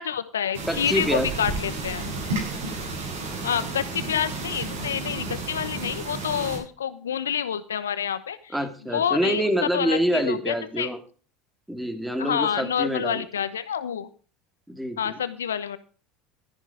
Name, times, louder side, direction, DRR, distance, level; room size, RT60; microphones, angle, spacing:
voice 1, 0.0-2.0 3.4-8.5 8.9-10.9 12.2-14.1 15.0-15.8, left 8 dB, 85° left, 14 dB, 1.0 m, -28 dB
sound 1, 0.5-6.6, right 3 dB, 80° right, 7.6 m, -32 dB
voice 2, 0.7-1.3 8.5-11.0 11.7-13.2 14.7-15.2, equal, 5° right, 7 dB, 2.5 m, -26 dB
13.0 x 11.0 x 4.9 m, 0.38 s
hypercardioid pair, 80°, 0 cm